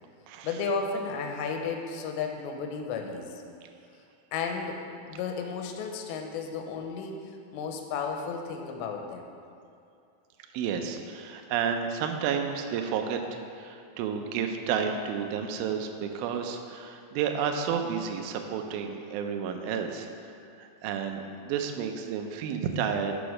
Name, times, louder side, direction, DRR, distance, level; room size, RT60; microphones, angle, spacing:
voice 1, 0.4-3.4 4.3-9.3, left 5 dB, 90° left, 3 dB, 2.9 m, -33 dB
voice 2, 10.5-20.1 20.6-23.2, right 7 dB, 90° right, 4 dB, 2.1 m, -31 dB
6.8 x 6.1 x 6.3 m, 2.5 s
omnidirectional pair, 5.0 m